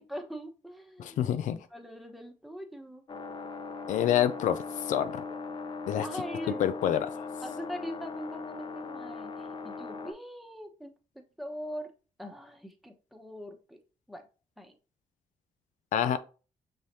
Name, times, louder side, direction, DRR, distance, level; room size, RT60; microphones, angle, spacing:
voice 1, 0.0-3.0 6.0-6.6 7.4-10.9 11.1-11.9 12.2-13.8 14.1-14.3 14.6-14.7, equal, ahead, 1.0 m, -42 dB
voice 2, 1.0-1.6 3.9-5.2 5.9-6.1 6.6-7.3 15.9-16.2, left 10 dB, 85° left, 0.4 m, -27 dB
sound 1, 3.1-10.1, left 4 dB, 40° left, 0.7 m, -39 dB
5.5 x 3.2 x 2.7 m
cardioid pair, 75°, 13 cm